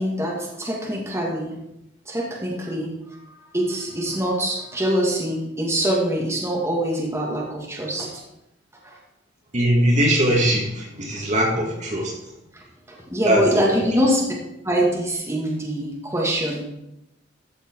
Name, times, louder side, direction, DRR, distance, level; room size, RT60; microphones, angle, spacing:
voice 1, 0.0-1.6 2.1-2.9 3.3-8.2 8.8-9.0 12.5-14.2 14.6-16.6, equal, 15° right, -3 dB, 2.4 m, -24 dB
voice 2, 9.5-12.3 13.2-14.0, equal, 40° right, -1 dB, 2.3 m, -21 dB
14.5 x 6.7 x 4.8 m, 0.86 s
head